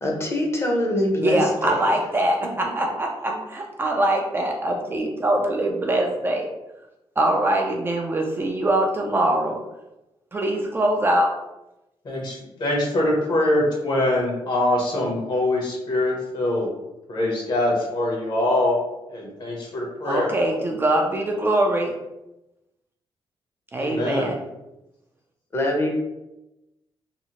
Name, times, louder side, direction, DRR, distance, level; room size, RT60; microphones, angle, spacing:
voice 1, 0.0-1.9 3.3-3.4 25.5-25.9, left 1 dB, 25° left, -1 dB, 0.6 m, -24 dB
voice 2, 1.2-6.5 7.2-9.6 10.3-11.3 20.0-21.9 23.7-24.4, right 1 dB, 25° right, 1 dB, 0.3 m, -23 dB
voice 3, 12.0-16.7 17.1-18.8 19.1-20.3 23.8-24.3, left 1 dB, 50° left, -2 dB, 0.9 m, -23 dB
2.7 x 2.0 x 2.8 m, 0.94 s
cardioid pair, 120°, 9 cm